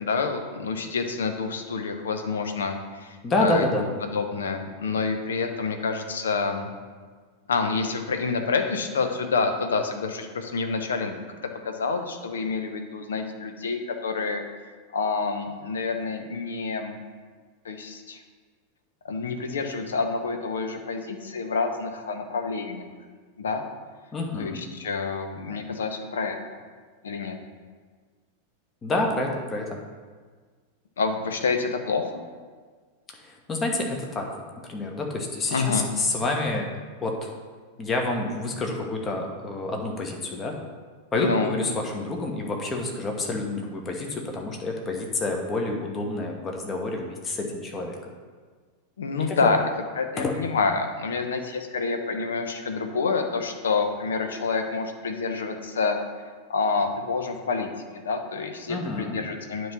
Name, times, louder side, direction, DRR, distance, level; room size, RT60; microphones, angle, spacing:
voice 1, 0.0-3.6 4.0-6.7 7.5-11.2 11.6-14.4 14.9-17.0 17.6-18.2 19.1-22.8 23.4-23.6 24.4-26.4 27.0-27.4 31.0-32.1 35.5-35.9 41.1-41.6 49.0-49.7 50.0-56.0 56.5-59.7, left 4 dB, 65° left, 6 dB, 0.7 m, -28 dB
voice 2, 3.2-3.8 24.1-24.6 28.8-29.8 33.1-34.4 34.7-36.7 37.0-37.3 37.8-40.5 41.1-47.9 49.3-49.4 50.2-50.4 58.7-59.2, left 2 dB, 20° left, 1 dB, 1.2 m, -28 dB
9.2 x 3.1 x 5.7 m, 1.5 s
figure-of-eight pair, 90°, 0 cm